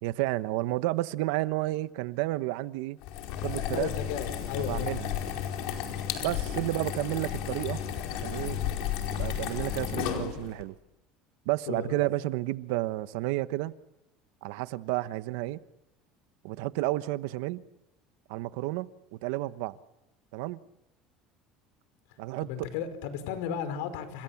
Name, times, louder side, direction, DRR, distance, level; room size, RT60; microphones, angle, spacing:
voice 1, 0.0-3.0 3.4-3.9 4.6-5.1 6.2-7.8 8.2-8.6 9.1-10.8 11.4-13.7 14.4-15.6 16.4-17.6 18.3-19.8 20.3-20.6 22.2-22.7, right 17 dB, 75° right, 1.1 m, -31 dB
sound 1, 3.0-10.6, left 9 dB, 60° left, 4.7 m, -33 dB
voice 2, 3.7-4.9 5.9-6.2 11.7-12.0 22.4-24.2, left 8 dB, 80° left, 4.9 m, -35 dB
30.0 x 27.5 x 7.3 m
cardioid pair, 175°, 0 cm